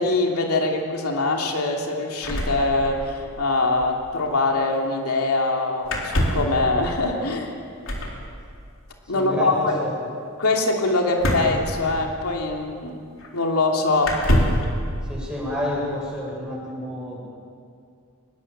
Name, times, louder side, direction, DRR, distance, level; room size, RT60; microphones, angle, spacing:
voice 1, 0.0-7.5 9.1-9.7 10.4-13.0 13.3-14.2, left 2 dB, 90° left, 1 dB, 2.9 m, -23 dB
sound 1, 2.2-3.3 3.5-3.6 3.8-4.0 5.8-6.6 7.8-8.2 11.2-12.3 13.2-13.3 14.0-14.7, equal, 60° left, 4.1 m, -24 dB
voice 2, 9.1-10.0 15.1-17.2, left 1 dB, 5° right, -5 dB, 7.9 m, -29 dB
25.0 x 21.5 x 7.6 m, 2.4 s
head